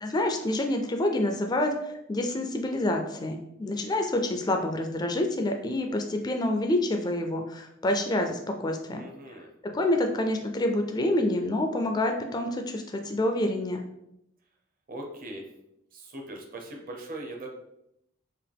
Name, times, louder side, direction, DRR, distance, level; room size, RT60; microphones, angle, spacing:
voice 1, 0.0-9.0 9.6-13.8, left 1 dB, 20° left, 4 dB, 0.4 m, -27 dB
voice 2, 8.9-9.5 14.9-15.4 15.9-17.5, right 1 dB, 45° right, 2 dB, 0.8 m, -40 dB
4.8 x 3.0 x 3.4 m, 0.82 s
head